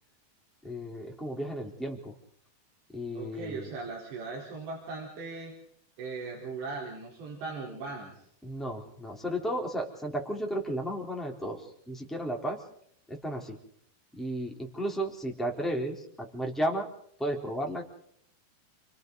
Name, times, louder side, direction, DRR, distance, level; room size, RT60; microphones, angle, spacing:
voice 1, 0.6-2.1 2.9-3.7 8.4-12.6 13.1-13.6 14.1-16.9 17.2-17.8, equal, ahead, 0 dB, 3.2 m, -33 dB
voice 2, 3.1-5.5 6.0-8.3, right 3 dB, 85° right, -3 dB, 6.6 m, -39 dB
29.5 x 24.5 x 4.1 m, 0.67 s
omnidirectional pair, 4.9 m